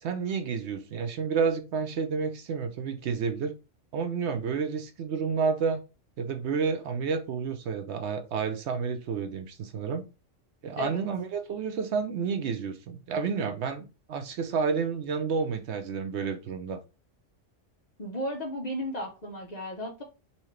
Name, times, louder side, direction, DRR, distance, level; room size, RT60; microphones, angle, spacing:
voice 1, 0.0-3.5 3.9-5.8 6.2-10.0 10.6-16.8, right 5 dB, 70° right, 0.8 m, -30 dB
voice 2, 18.0-20.0, equal, 40° left, 0.7 m, -34 dB
4.1 x 2.4 x 3.1 m
omnidirectional pair, 1.3 m